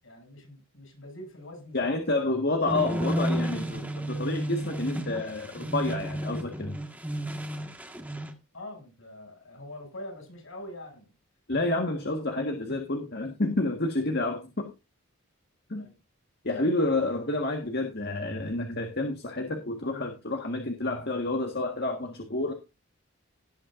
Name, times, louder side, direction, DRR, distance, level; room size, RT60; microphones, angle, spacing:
voice 1, 0.0-2.0 8.5-11.1 15.7-16.0 17.2-17.3, left 1 dB, 65° left, 7.2 m, -44 dB
voice 2, 1.7-6.8 11.5-14.7 15.7-15.9 16.4-22.5, left 2 dB, 50° left, 1.7 m, -29 dB
sound 1, 2.6-8.3, equal, 5° right, 1.6 m, -32 dB
18.0 x 8.6 x 2.6 m
head